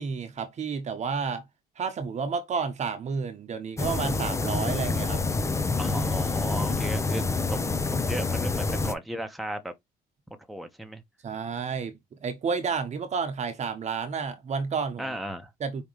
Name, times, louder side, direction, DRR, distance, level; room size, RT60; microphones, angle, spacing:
voice 1, 0.0-1.5 1.8-5.2 11.2-15.2 15.6-15.8, right 5 dB, 45° right, 1.1 m, -31 dB
sound 1, 3.8-8.9, left 3 dB, 15° left, 0.6 m, -27 dB
voice 2, 5.8-7.6 8.1-9.7 10.5-11.0 15.0-15.5, right 1 dB, ahead, 1.0 m, -35 dB
5.2 x 3.1 x 3.1 m
cardioid pair, 110°, 17 cm